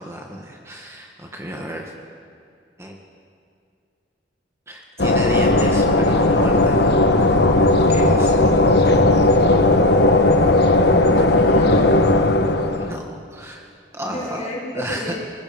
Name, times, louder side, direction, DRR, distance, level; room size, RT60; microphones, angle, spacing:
voice 1, 0.0-1.9 2.8-3.0 4.7-6.9 7.9-8.4 12.8-13.7 13.9-14.4 14.7-15.1, equal, 15° right, 0 dB, 1.7 m, -32 dB
sound 1, 5.0-13.0, left 2 dB, 70° left, 1.3 m, -16 dB
voice 2, 11.4-11.9 14.0-15.2, equal, 40° left, -4 dB, 6.1 m, -31 dB
27.0 x 19.5 x 5.3 m, 2.4 s
head